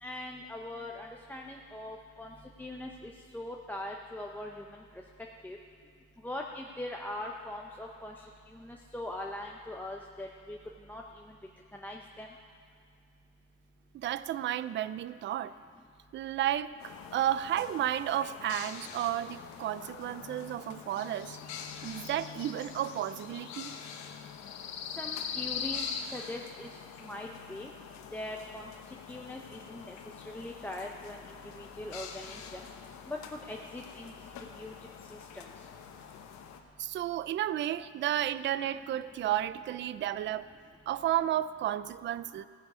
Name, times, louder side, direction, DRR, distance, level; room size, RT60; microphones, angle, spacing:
voice 1, 0.0-4.8 5.4-5.6 6.2-8.3 8.5-10.6 10.9-11.0 11.3-11.4 11.7-12.3 25.0-26.7 27.0-27.7 28.1-28.7 29.1-32.6 33.1-34.7 35.1-35.4, left 1 dB, 5° left, -1 dB, 0.6 m, -41 dB
voice 2, 13.9-15.5 16.1-21.4 21.8-23.7 36.8-40.5 40.9-42.4, right 12 dB, 40° right, 16 dB, 0.4 m, -32 dB
sound 1, 16.8-36.6, left 7 dB, 65° left, 1.1 m, -43 dB
16.0 x 9.9 x 4.8 m, 2.3 s
cardioid pair, 120°, 31 cm